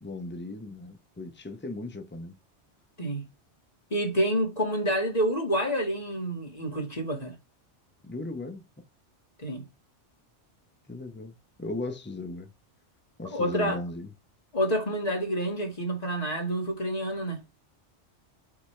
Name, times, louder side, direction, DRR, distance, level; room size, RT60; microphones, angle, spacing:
voice 1, 0.0-2.4 8.0-8.6 10.9-12.5 13.2-14.1, left 2 dB, 10° left, 0.9 m, -37 dB
voice 2, 3.9-7.3 9.4-9.6 13.3-13.8 14.5-17.4, equal, 35° left, 2.3 m, -28 dB
5.8 x 5.2 x 3.3 m
omnidirectional pair, 1.2 m